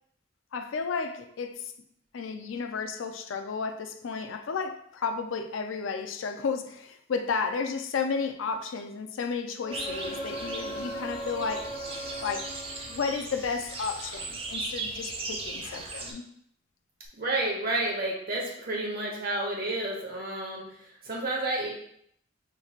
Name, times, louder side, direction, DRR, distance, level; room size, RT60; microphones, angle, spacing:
voice 1, 0.5-1.7 2.1-11.8 12.2-12.5 12.9-16.2, left 5 dB, 80° left, 7 dB, 0.4 m, -32 dB
sound 1, 9.6-13.4 17.1-17.2, right 1 dB, 35° left, 0.6 m, -38 dB
sound 2, 9.7-16.1, right 3 dB, 30° right, 0.6 m, -38 dB
voice 2, 17.2-20.6 21.0-21.7, right 2 dB, 50° right, -1 dB, 1.1 m, -30 dB
5.6 x 3.1 x 2.4 m, 0.70 s
head